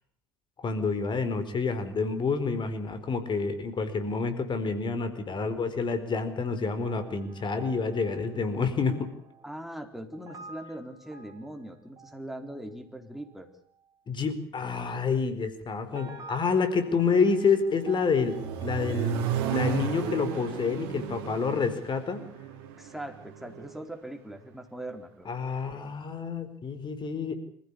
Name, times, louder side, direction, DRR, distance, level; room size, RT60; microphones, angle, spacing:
voice 1, 0.6-9.1 14.1-18.4 18.6-22.2 25.3-27.3, left 5 dB, 40° left, 10 dB, 4.4 m, -28 dB
sound 1, 6.8-9.6 10.1-12.6 13.2-13.5 13.7-13.9 15.9-21.4 21.8-21.9, right 3 dB, 25° right, 5.8 m, -50 dB
voice 2, 9.4-13.5 22.8-25.3, right 1 dB, ahead, 5 dB, 4.2 m, -41 dB
Accelerating revving vroom, 17.7-23.7, right 8 dB, 70° right, 2.7 m, -33 dB
26.5 x 15.5 x 8.5 m, 0.65 s
hypercardioid pair, 65°, 12 cm